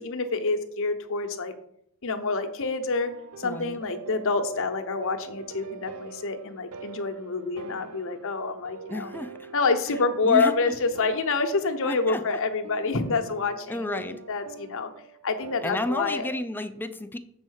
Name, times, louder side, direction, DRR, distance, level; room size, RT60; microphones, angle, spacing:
voice 1, 0.0-1.5 2.0-3.1 3.4-9.1 9.5-14.0 14.3-14.9 15.2-16.3, left 4 dB, 65° left, 7 dB, 0.9 m, -27 dB
sound 1, 2.9-16.2, right 5 dB, 70° right, 0.6 m, -45 dB
voice 2, 3.4-3.8 8.9-9.5 10.2-10.5 11.8-12.4 13.7-14.2 15.6-17.2, left 1 dB, 10° left, 10 dB, 0.4 m, -31 dB
7.2 x 4.3 x 6.4 m, 0.72 s
head